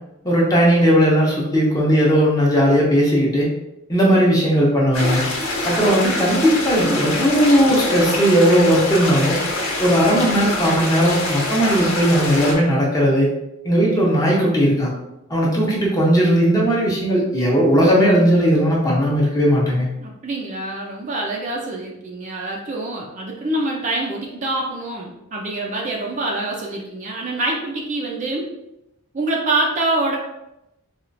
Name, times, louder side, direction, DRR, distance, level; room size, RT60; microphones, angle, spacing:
voice 1, 0.2-3.5 3.9-5.2 5.6-9.4 9.8-13.3 13.6-14.9 15.3-19.9, equal, 15° left, -4 dB, 0.7 m, -17 dB
sound 1, 4.9-12.5, left 2 dB, 75° left, 0.9 m, -24 dB
voice 2, 20.0-28.5 29.1-30.2, right 2 dB, 35° right, -2 dB, 0.5 m, -25 dB
4.3 x 2.4 x 2.5 m, 0.89 s
head